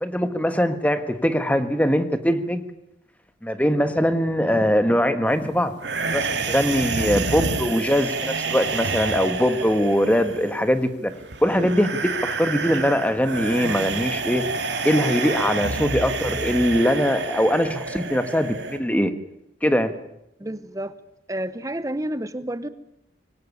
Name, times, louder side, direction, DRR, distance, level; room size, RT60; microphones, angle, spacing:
voice 1, 0.0-2.7 3.4-5.8 6.1-11.1 11.4-14.4 14.8-19.1 19.6-19.9, equal, 10° left, 9 dB, 1.5 m, -22 dB
sound 1, 5.8-18.8, right 4 dB, 70° right, 2.6 m, -28 dB
voice 2, 20.4-20.9 21.3-22.7, right 1 dB, 20° right, 13 dB, 0.9 m, -30 dB
23.5 x 17.5 x 9.7 m, 0.83 s
head